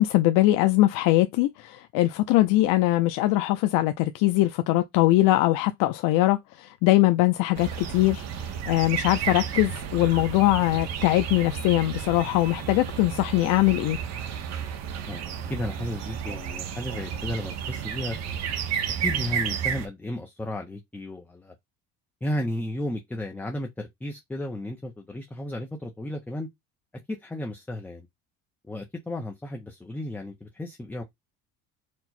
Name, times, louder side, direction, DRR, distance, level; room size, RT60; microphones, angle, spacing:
voice 1, 0.0-8.2 8.7-14.0, left 17 dB, 70° left, 0.5 m, -22 dB
sound 1, 7.5-19.9, right 8 dB, 50° right, 0.7 m, -32 dB
voice 2, 15.1-18.2 19.0-21.5 22.2-26.5 27.1-28.1 28.7-31.0, left 1 dB, 5° left, 0.4 m, -33 dB
4.5 x 2.0 x 4.1 m
cardioid pair, 155°, 33 cm